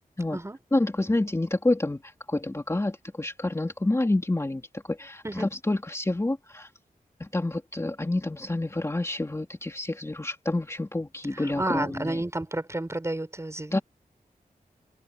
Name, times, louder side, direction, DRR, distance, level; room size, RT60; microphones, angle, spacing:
voice 1, 0.7-6.7 7.2-12.2 13.7-13.8, left 2 dB, 20° left, 2.8 m, -28 dB
voice 2, 11.3-13.8, right 1 dB, 20° right, 6.2 m, -31 dB
wide cardioid pair, 120°, 15 cm